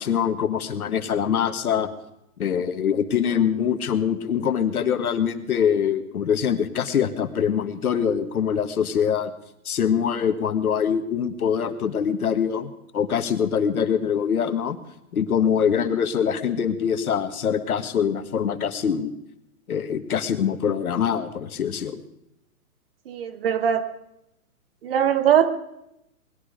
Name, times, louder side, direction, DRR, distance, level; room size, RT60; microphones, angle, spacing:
voice 1, 0.0-1.9 2.4-9.3 9.6-14.8 15.1-19.1 19.7-22.0, left 8 dB, 75° left, 9 dB, 1.7 m, -24 dB
voice 2, 23.1-23.9 24.8-25.5, right 9 dB, 40° right, 14 dB, 1.0 m, -21 dB
20.5 x 12.5 x 5.1 m, 0.83 s
hypercardioid pair, 155°, 44 cm